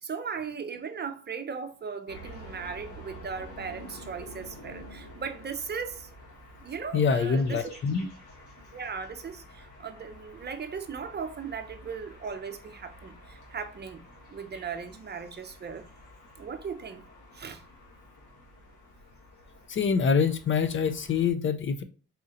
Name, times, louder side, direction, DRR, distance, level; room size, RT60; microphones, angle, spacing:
voice 1, 0.0-6.1 6.6-7.8 8.7-15.9 16.4-17.1 17.3-17.6, right 6 dB, 35° right, 0.6 m, -38 dB
sound 1, 2.1-21.3, equal, 75° left, 1.7 m, -49 dB
voice 2, 6.9-8.1 19.7-21.8, left 6 dB, 40° left, 0.5 m, -25 dB
4.2 x 2.7 x 3.7 m
cardioid pair, 90°, 30 cm